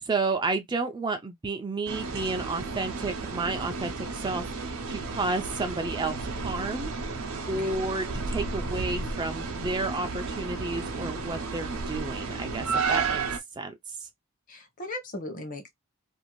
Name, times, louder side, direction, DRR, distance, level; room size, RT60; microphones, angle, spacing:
voice 1, 0.0-6.9 7.5-13.2 13.6-13.7 14.0-14.1, right 3 dB, 20° right, 0.3 m, -31 dB
sound 1, 1.9-13.4, right 4 dB, 75° right, 0.6 m, -32 dB
voice 2, 14.5-15.7, left 1 dB, 40° left, 0.7 m, -38 dB
2.6 x 2.4 x 2.9 m
head